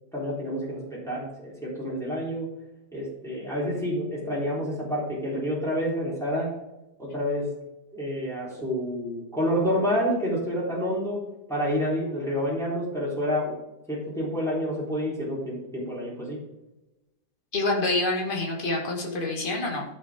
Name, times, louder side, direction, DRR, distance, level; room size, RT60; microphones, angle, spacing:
voice 1, 0.1-2.5 2.9-6.5 7.0-7.5 7.9-11.2 11.5-13.6 13.9-16.4, equal, ahead, -7 dB, 4.0 m, -28 dB
voice 2, 17.5-19.8, left 2 dB, 30° left, -1 dB, 2.2 m, -27 dB
14.5 x 7.0 x 3.7 m, 0.96 s
omnidirectional pair, 1.8 m